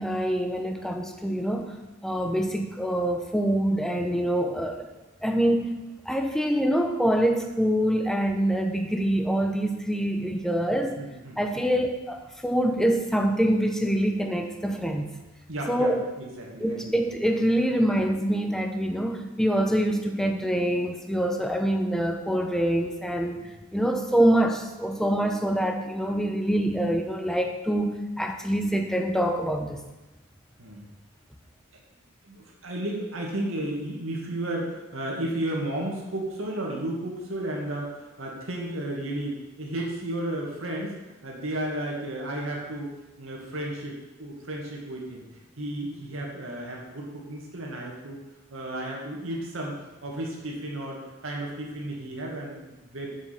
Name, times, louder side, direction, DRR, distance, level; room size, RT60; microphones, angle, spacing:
voice 1, 0.0-1.7 2.0-4.9 5.2-11.0 11.4-15.2 15.7-16.0 16.6-29.8, right 1 dB, ahead, 4 dB, 0.8 m, -25 dB
voice 2, 10.7-11.7 15.5-15.9 16.2-16.9 23.4-23.5 30.6-30.8 32.2-42.9 43.2-48.2 48.5-49.7 50.0-53.1, right 1 dB, 80° right, -2 dB, 2.1 m, -33 dB
7.6 x 7.3 x 6.0 m, 1.1 s
head